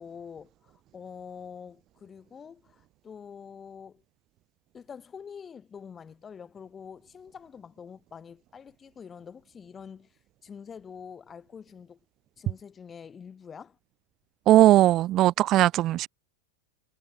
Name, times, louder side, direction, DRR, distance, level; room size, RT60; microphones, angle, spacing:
voice 1, 0.0-4.0 4.7-12.0 12.4-13.8, left 7 dB, 20° left, 6.2 m, -46 dB
voice 2, 14.5-16.1, right 14 dB, 35° right, 0.4 m, -19 dB
figure-of-eight pair, 90°, 0 cm